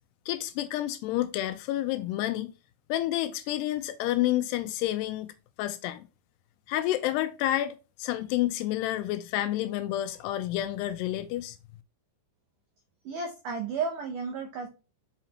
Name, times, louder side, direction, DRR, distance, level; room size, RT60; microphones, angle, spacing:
voice 1, 0.3-2.5 2.9-5.3 5.6-6.1 6.7-11.6, left 14 dB, 85° left, 2.5 m, -29 dB
voice 2, 13.1-14.7, right 5 dB, 90° right, 1.8 m, -33 dB
6.1 x 5.7 x 2.9 m
omnidirectional pair, 5.0 m